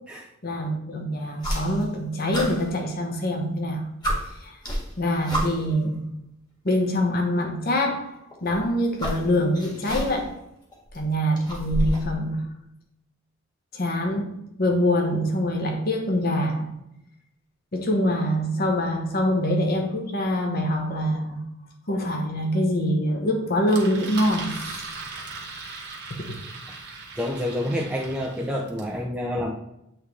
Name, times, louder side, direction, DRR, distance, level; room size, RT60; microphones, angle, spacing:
voice 1, 0.4-3.9 4.4-4.6 5.0-6.1 6.6-10.4 10.9-12.5 13.7-16.7 17.7-21.4 21.9-24.9 26.1-26.2, equal, 50° left, 2 dB, 1.1 m, -25 dB
sound 1, 1.4-2.0 2.3-3.4 3.7-3.8 4.0-5.8 6.8-6.9 8.3-10.4 10.7-12.1, equal, 20° left, 1.6 m, -30 dB
Engine, 23.7-28.9, right 4 dB, 55° right, 1.2 m, -38 dB
voice 2, 27.2-29.6, left 1 dB, 5° right, -2 dB, 0.5 m, -28 dB
8.5 x 3.5 x 3.2 m, 0.82 s
head